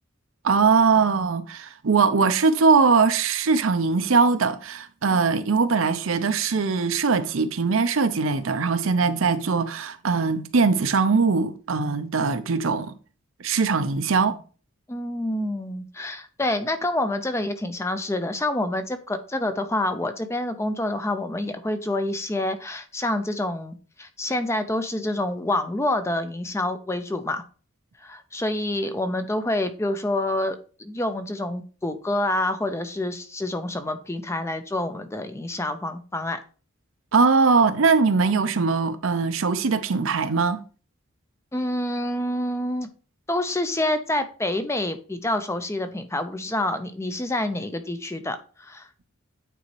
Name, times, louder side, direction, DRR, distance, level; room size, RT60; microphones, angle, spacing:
voice 1, 0.4-12.9 13.4-14.4 37.1-40.6, right 4 dB, 75° right, 0.6 m, -21 dB
voice 2, 14.9-27.4 28.0-36.4 41.5-42.9 43.3-48.9, left 1 dB, 15° left, 0.5 m, -27 dB
9.1 x 4.1 x 3.1 m
head